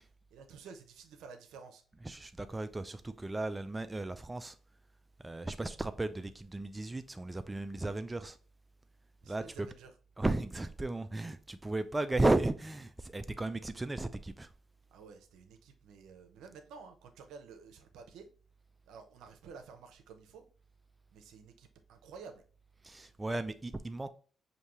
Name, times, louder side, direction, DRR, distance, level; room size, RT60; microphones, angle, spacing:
voice 1, 0.3-1.8 9.2-9.9 14.9-18.3 18.9-20.5 21.1-22.4, right 5 dB, 85° right, 0.7 m, -52 dB
voice 2, 2.0-4.6 5.2-8.4 9.3-9.7 10.2-14.5 22.8-24.1, right 2 dB, 15° right, 0.3 m, -34 dB
5.1 x 2.7 x 3.0 m
cardioid pair, 90°, 0 cm